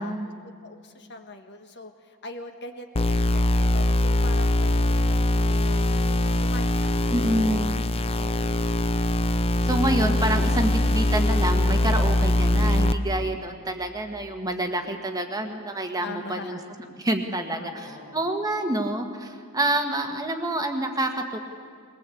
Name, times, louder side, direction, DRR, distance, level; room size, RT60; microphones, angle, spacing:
voice 1, 0.0-7.5 16.0-16.6 17.6-18.4, left 2 dB, 50° left, 6 dB, 1.6 m, -42 dB
sound 1, 3.0-12.9, left 1 dB, 25° left, 0.7 m, -22 dB
voice 2, 7.1-7.7 9.6-16.6 17.0-21.4, right 1 dB, 15° right, 4 dB, 1.7 m, -27 dB
22.0 x 20.0 x 8.5 m, 2.1 s
head